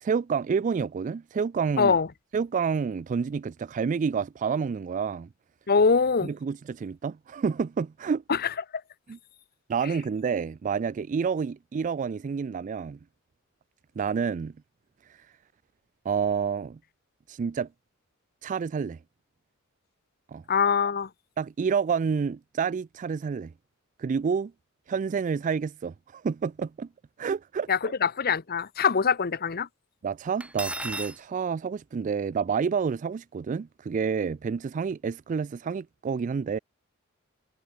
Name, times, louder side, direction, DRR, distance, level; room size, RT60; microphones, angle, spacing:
voice 1, 0.0-2.0 2.3-5.3 6.2-8.2 9.1-9.2 9.7-13.0 14.0-14.5 16.1-16.8 17.3-17.7 18.4-19.0 20.3-20.4 21.4-23.5 24.0-24.5 24.9-26.9 27.2-27.9 30.0-36.6, right 6 dB, 35° right, 0.3 m, -29 dB
voice 2, 1.8-2.1 5.7-6.3 8.3-8.5 20.5-21.1 27.7-29.7, left 5 dB, 45° left, 0.8 m, -23 dB
Cutlery silverware, 30.4-31.2, right 1 dB, 5° right, 2.8 m, -34 dB
head